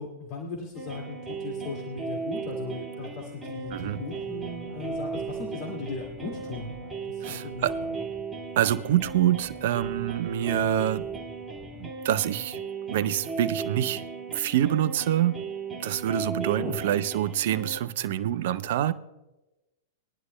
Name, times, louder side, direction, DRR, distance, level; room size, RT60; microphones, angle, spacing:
voice 1, 0.0-6.7 7.1-7.7 16.5-16.8, left 3 dB, 45° left, 0 dB, 2.3 m, -37 dB
sound 1, 0.7-17.8, right 5 dB, 15° right, 2.1 m, -36 dB
sound 2, 3.5-12.5, equal, 5° left, 3.1 m, -48 dB
voice 2, 3.7-4.0 7.2-7.7 8.6-11.1 11.8-12.6 12.9-15.4 15.7-18.9, right 11 dB, 55° right, 15 dB, 0.6 m, -26 dB
22.0 x 11.0 x 2.3 m, 1.0 s
figure-of-eight pair, 100°, 0 cm